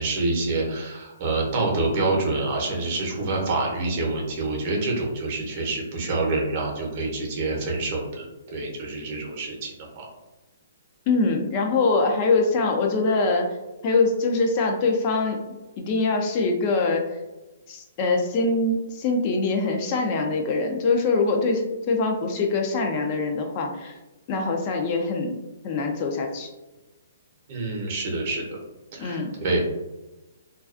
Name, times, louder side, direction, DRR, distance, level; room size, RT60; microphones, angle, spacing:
voice 1, 0.0-8.3 8.5-10.1 27.5-28.6 28.9-29.6, right 2 dB, 45° right, -1 dB, 0.7 m, -27 dB
voice 2, 11.1-13.5 13.8-15.4 15.8-17.0 17.7-23.9 24.3-25.3 25.6-26.5 29.0-29.3, left 3 dB, 35° left, 2 dB, 0.3 m, -23 dB
2.3 x 2.3 x 2.4 m, 1.1 s
hypercardioid pair, 145°, 0 cm